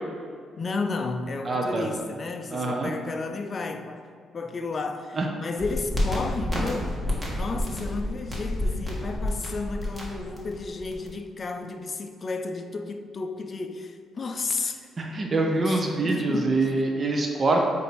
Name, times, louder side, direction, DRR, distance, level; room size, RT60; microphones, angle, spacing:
voice 1, 0.6-4.0 4.3-7.0 7.3-14.8 15.6-16.7, left 3 dB, 40° left, 7 dB, 0.5 m, -32 dB
voice 2, 1.4-1.8 2.5-2.9 5.2-5.3 15.0-17.7, right 2 dB, 35° right, 1 dB, 0.7 m, -25 dB
sound 1, 5.6-11.1, left 1 dB, 10° right, 1.5 m, -29 dB
8.0 x 2.7 x 4.5 m, 2.1 s
cardioid pair, 90°, 0 cm